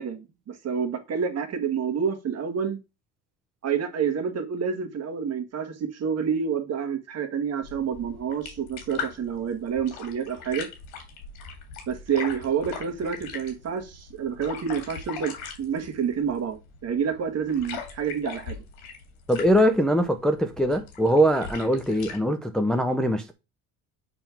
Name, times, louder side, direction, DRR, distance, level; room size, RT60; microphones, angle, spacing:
voice 1, 0.0-2.8 3.6-10.7 11.9-15.3 15.6-18.6, right 7 dB, 40° right, 1.6 m, -28 dB
sound 1, 7.6-22.2, left 6 dB, 90° left, 2.8 m, -40 dB
voice 2, 19.3-23.3, equal, ahead, 0.6 m, -22 dB
6.8 x 3.5 x 5.9 m
cardioid pair, 110°, 39 cm